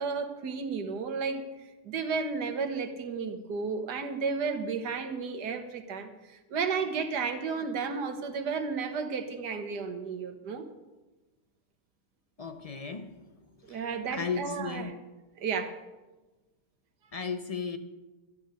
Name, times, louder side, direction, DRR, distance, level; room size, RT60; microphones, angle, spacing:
voice 1, 0.0-1.4 1.9-10.6 13.6-14.9 15.4-15.8, right 5 dB, 85° right, 8 dB, 1.7 m, -33 dB
voice 2, 12.4-13.2 13.7-14.9 17.1-17.8, left 5 dB, 45° left, 8 dB, 0.4 m, -35 dB
12.5 x 11.0 x 6.4 m, 1.1 s
omnidirectional pair, 1.7 m